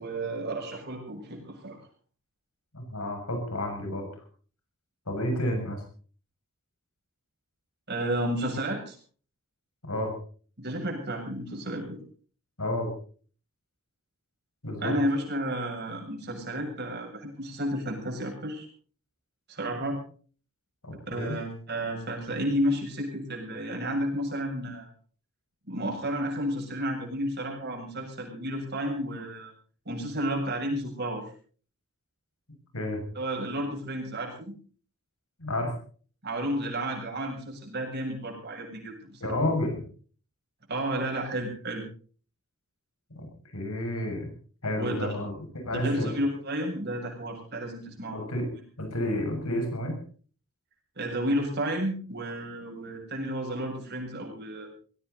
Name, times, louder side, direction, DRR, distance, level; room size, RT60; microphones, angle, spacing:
voice 1, 0.0-1.8 7.9-9.0 10.6-12.0 14.8-18.7 19.5-20.0 21.1-24.9 25.7-29.5 29.9-31.2 33.1-34.5 36.2-39.4 40.7-41.8 44.8-45.2 45.7-48.2 51.0-54.7, right 1 dB, 50° right, 0 dB, 7.4 m, -32 dB
voice 2, 2.7-4.1 5.1-5.8 9.8-10.1 12.6-12.9 14.6-14.9 20.8-21.4 32.7-33.0 35.4-35.7 39.2-39.8 43.1-43.3 43.5-44.3 44.6-46.1 48.1-48.5 48.8-50.0, left 1 dB, 85° left, 4 dB, 6.8 m, -30 dB
21.0 x 17.0 x 4.1 m, 0.43 s
head